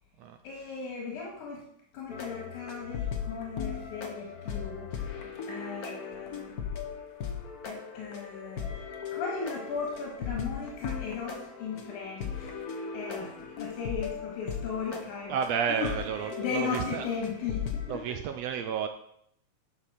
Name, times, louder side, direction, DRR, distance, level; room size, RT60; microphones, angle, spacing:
voice 1, 0.4-1.6 1.9-5.1 5.5-6.6 7.6-8.7 9.1-12.5 12.9-15.4 15.7-15.9 16.4-18.2, left 5 dB, 90° left, -2 dB, 3.1 m, -36 dB
sound 1, 2.1-17.9, left 7 dB, 60° left, 0.9 m, -38 dB
voice 2, 15.3-17.0 17.9-18.9, right 7 dB, 75° right, 7 dB, 1.6 m, -31 dB
10.5 x 5.5 x 6.4 m, 0.74 s
omnidirectional pair, 3.4 m